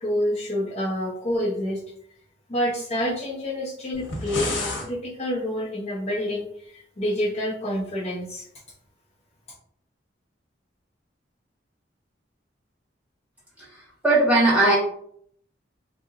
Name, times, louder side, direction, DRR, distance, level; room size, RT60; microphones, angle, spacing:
voice 1, 0.0-1.8 2.5-8.4, left 1 dB, 35° left, -5 dB, 0.5 m, -28 dB
sound 1, 3.9-4.9, left 2 dB, 70° left, 0.9 m, -29 dB
voice 2, 14.0-14.8, right 2 dB, 10° right, -8 dB, 1.3 m, -17 dB
2.7 x 2.0 x 3.6 m, 0.66 s
head